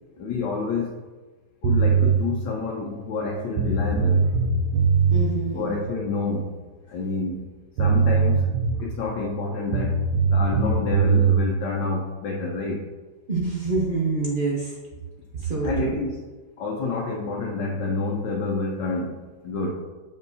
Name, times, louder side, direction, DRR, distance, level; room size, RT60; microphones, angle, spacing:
voice 1, 0.2-1.0 1.6-4.3 5.5-6.5 6.9-7.5 7.8-8.5 8.8-10.0 10.3-12.9 15.6-16.2 16.6-19.2 19.4-19.7, left 3 dB, 70° left, -2 dB, 1.4 m, -28 dB
sound 1, 1.6-2.2 3.2-3.3 3.6-5.3 7.4-7.5 7.8-9.0 9.7-11.4, right 5 dB, 75° right, 1.2 m, -20 dB
voice 2, 5.1-5.8 13.3-14.8 15.3-15.9, right 3 dB, 45° right, -4 dB, 0.7 m, -26 dB
7.1 x 5.3 x 2.7 m, 1.3 s
omnidirectional pair, 2.1 m